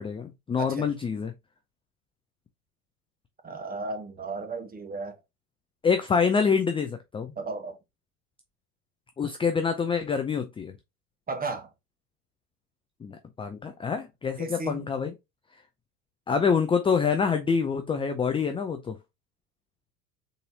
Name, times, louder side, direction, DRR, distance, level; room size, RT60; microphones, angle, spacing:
voice 1, 0.0-1.3 5.8-7.3 9.2-10.8 13.0-15.1 16.3-19.0, left 6 dB, 15° left, 0.4 m, -26 dB
voice 2, 0.6-0.9 3.4-5.2 7.4-7.8 11.3-11.7 14.4-14.8, right 3 dB, 20° right, 1.1 m, -34 dB
4.1 x 3.9 x 2.7 m
hypercardioid pair, 75°, 45 cm